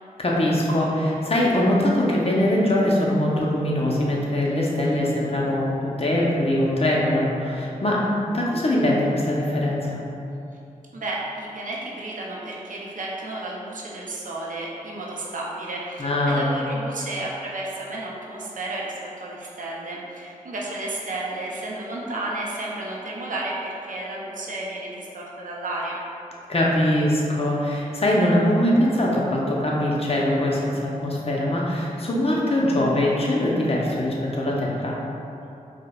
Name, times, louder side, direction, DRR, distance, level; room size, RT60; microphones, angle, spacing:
voice 1, 0.2-8.1 8.3-10.0 16.0-16.5 26.5-35.0, left 1 dB, 45° left, -4 dB, 0.7 m, -22 dB
voice 2, 10.9-26.0, right 2 dB, 65° right, -4 dB, 0.5 m, -32 dB
4.7 x 2.1 x 2.3 m, 2.7 s
cardioid pair, 40°, 14 cm